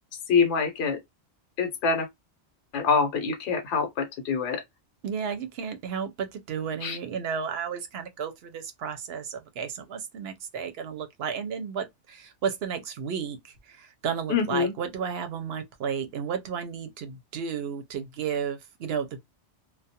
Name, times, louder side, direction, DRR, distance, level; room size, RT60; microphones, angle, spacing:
voice 1, 0.3-1.0 1.6-2.1 2.7-4.6 6.8-7.0 14.3-14.7, left 5 dB, 70° left, 0.9 m, -25 dB
voice 2, 5.0-13.4 13.7-19.2, right 7 dB, 65° right, 0.8 m, -33 dB
2.3 x 2.1 x 2.7 m
omnidirectional pair, 1.2 m